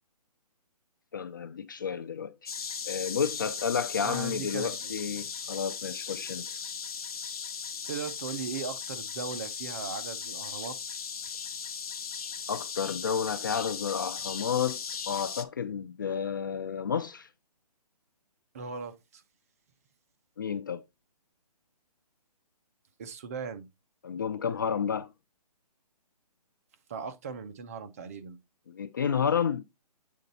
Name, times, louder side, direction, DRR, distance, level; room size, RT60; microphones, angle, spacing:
voice 1, 1.1-2.5 2.9-6.6 12.5-14.8 15.1-17.3 20.4-20.8 24.0-25.1 28.7-29.6, left 7 dB, 30° left, 0.4 m, -31 dB
sound 1, 2.5-15.4, left 6 dB, 60° left, 0.9 m, -37 dB
voice 2, 4.0-5.0 7.9-11.0 18.5-19.2 23.0-23.7 26.9-28.4, right 5 dB, 20° right, 0.5 m, -38 dB
8.3 x 3.8 x 4.1 m
hypercardioid pair, 160°, 21 cm